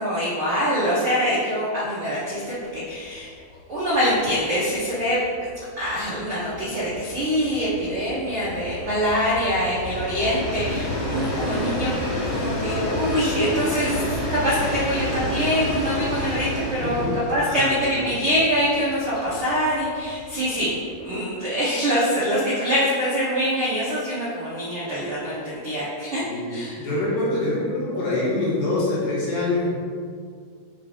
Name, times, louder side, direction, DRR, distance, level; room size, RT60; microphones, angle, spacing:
voice 1, 0.0-3.3 3.7-5.5 5.8-11.9 12.2-26.2 26.5-26.9, equal, 85° right, -11 dB, 1.2 m, -24 dB
Train, 2.8-2.9 3.3-3.4 3.6-21.0, left 1 dB, 55° left, 2.0 m, -30 dB
voice 2, 16.8-17.2 17.5-18.0 26.2-29.7, left 2 dB, 80° left, -7 dB, 3.7 m, -25 dB
8.1 x 3.4 x 3.7 m, 2.1 s
omnidirectional pair, 4.9 m